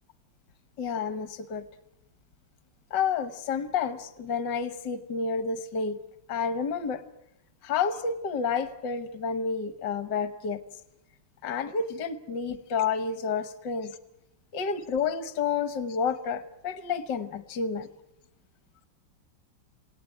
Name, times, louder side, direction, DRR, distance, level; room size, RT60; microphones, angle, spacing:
voice 1, 0.8-1.6 2.9-6.0 6.3-7.0 7.6-10.6 11.4-13.9 14.5-17.9, left 5 dB, 70° left, 12 dB, 1.7 m, -30 dB
28.5 x 18.0 x 9.1 m, 0.86 s
omnidirectional pair, 2.0 m